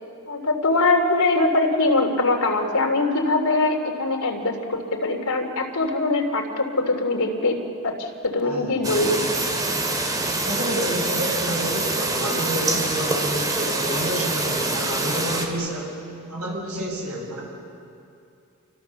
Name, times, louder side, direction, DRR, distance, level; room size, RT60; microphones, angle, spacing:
voice 1, 0.3-9.3, left 2 dB, 85° left, 1 dB, 3.2 m, -22 dB
sound 1, 8.8-15.5, right 2 dB, 15° right, 2.6 m, -25 dB
voice 2, 10.4-15.9 16.3-17.4, right 1 dB, 85° right, -2 dB, 7.9 m, -29 dB
28.5 x 24.5 x 7.2 m, 2.6 s
head